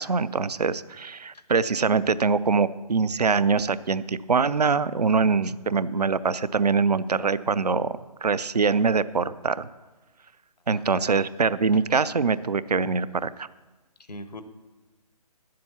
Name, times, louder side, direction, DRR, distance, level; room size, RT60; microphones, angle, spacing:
voice 1, 0.0-7.9 8.2-9.7 10.7-13.5, right 5 dB, 85° right, 16 dB, 0.5 m, -23 dB
voice 2, 10.7-11.2 14.1-14.4, left 1 dB, 85° left, 10 dB, 1.1 m, -40 dB
9.8 x 7.6 x 7.1 m, 1.2 s
figure-of-eight pair, 140°, 20 cm